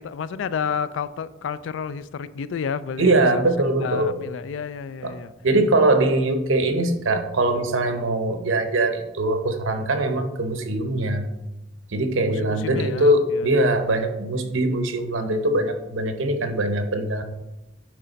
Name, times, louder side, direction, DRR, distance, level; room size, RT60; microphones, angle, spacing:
voice 1, 0.0-3.4 3.8-5.3 5.8-6.1 10.1-10.2 12.3-13.9, left 6 dB, 75° left, 15 dB, 0.3 m, -31 dB
voice 2, 3.0-4.2 5.0-5.2 5.4-11.3 11.9-17.2, right 2 dB, 90° right, 6 dB, 0.9 m, -22 dB
9.5 x 3.3 x 4.0 m, 0.98 s
head